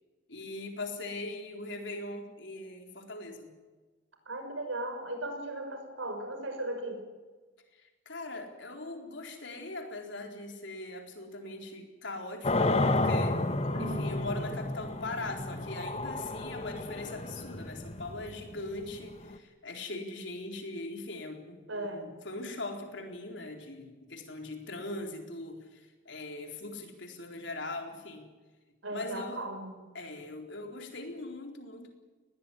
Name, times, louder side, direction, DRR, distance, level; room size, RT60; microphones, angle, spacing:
voice 1, 0.3-3.5 7.7-13.4 13.8-28.3 28.9-29.5 29.9-31.9, left 2 dB, 65° left, 3 dB, 4.2 m, -41 dB
voice 2, 4.3-7.0 13.7-14.0 21.7-22.1 28.8-29.8, right 1 dB, 80° right, 5 dB, 5.9 m, -37 dB
sound 1, 12.4-19.4, left 2 dB, 30° left, 1.2 m, -31 dB
20.5 x 18.5 x 10.0 m, 1.3 s
head